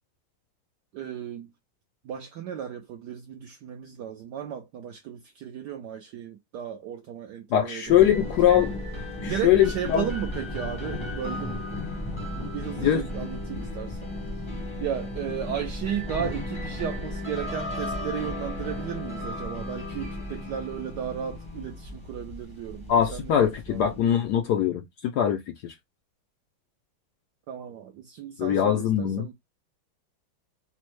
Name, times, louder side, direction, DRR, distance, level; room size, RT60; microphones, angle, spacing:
voice 1, 0.9-1.5 2.0-8.0 9.2-11.6 12.3-14.5 14.8-23.9 27.5-29.3, right 9 dB, 75° right, 0.9 m, -35 dB
voice 2, 7.5-8.7 9.2-10.0 12.8-13.0 22.9-25.7 28.4-29.3, left 10 dB, 85° left, 0.9 m, -22 dB
sound 1, 7.9-24.4, left 1 dB, 25° left, 0.6 m, -35 dB
4.2 x 2.1 x 3.0 m
omnidirectional pair, 2.3 m